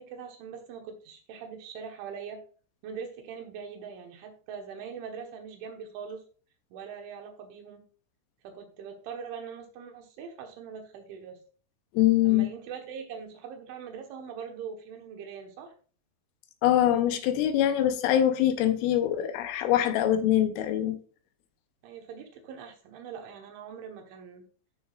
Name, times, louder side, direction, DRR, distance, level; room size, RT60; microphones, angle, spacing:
voice 1, 0.0-2.4 2.8-6.2 6.7-7.8 8.4-11.4 12.2-15.7 21.8-24.5, right 6 dB, 75° right, 3.5 m, -42 dB
voice 2, 11.9-12.5 16.6-21.0, left 12 dB, 80° left, 3.2 m, -23 dB
13.5 x 6.2 x 2.5 m
omnidirectional pair, 5.9 m